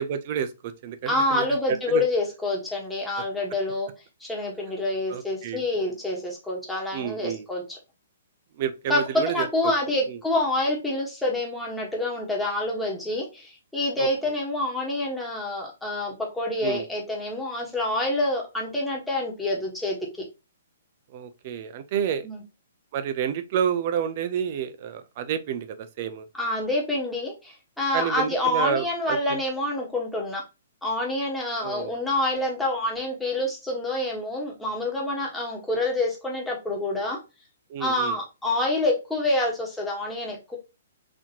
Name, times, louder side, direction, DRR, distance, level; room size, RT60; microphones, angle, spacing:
voice 1, 0.0-2.0 5.1-5.6 6.9-7.5 8.6-9.5 10.1-10.2 14.0-14.1 16.6-16.8 21.1-22.3 22.9-26.3 27.9-29.4 31.6-31.9 37.7-38.2, right 8 dB, 45° right, 0.6 m, -29 dB
voice 2, 1.1-3.9 4.2-7.8 8.9-20.0 22.2-22.4 26.4-30.4 30.8-37.2 37.8-40.6, left 2 dB, 5° left, 1.3 m, -27 dB
4.2 x 2.9 x 2.8 m
hypercardioid pair, 145°, 0 cm